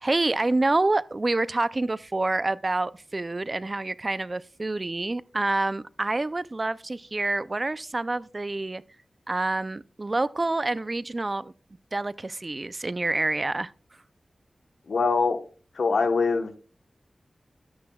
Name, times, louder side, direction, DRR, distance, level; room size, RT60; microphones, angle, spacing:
voice 1, 0.0-8.8 9.3-11.5 11.9-13.7, right 2 dB, 40° right, 0.4 m, -27 dB
voice 2, 14.9-15.4 15.7-16.6, left 4 dB, 80° left, 1.0 m, -23 dB
12.5 x 9.5 x 2.3 m
wide cardioid pair, 60°, 0 cm